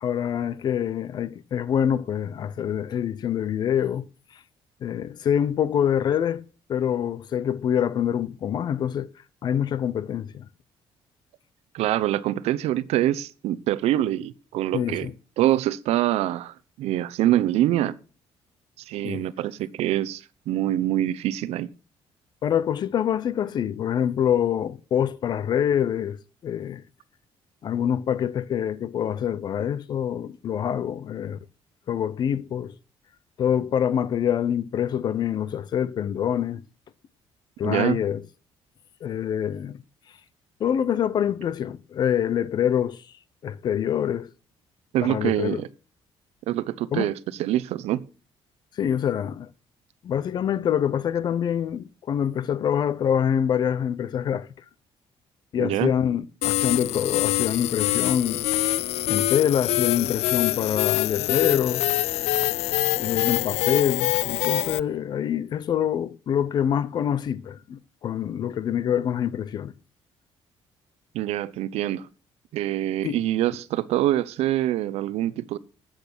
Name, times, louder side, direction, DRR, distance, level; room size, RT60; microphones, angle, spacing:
voice 1, 0.0-4.0 4.8-6.4 6.7-9.1 9.4-10.5 14.7-15.1 19.0-19.2 22.4-26.2 26.4-26.8 27.6-31.4 31.9-32.7 33.4-36.6 37.6-38.2 39.0-39.8 40.6-43.0 43.4-44.3 45.0-45.6 46.9-47.1 48.8-49.5 50.0-54.5 55.5-58.4 59.1-61.8 63.0-69.7 73.0-73.2, left 9 dB, 45° left, 0.7 m, -25 dB
voice 2, 11.7-15.1 15.4-18.0 18.8-21.7 37.6-38.0 44.9-45.7 46.5-48.0 55.6-55.9 71.1-72.1 72.5-75.6, right 13 dB, 85° right, 0.8 m, -25 dB
sound 1, 56.4-64.8, left 15 dB, 85° left, 0.5 m, -25 dB
13.5 x 8.9 x 6.2 m
cardioid pair, 175°, 11 cm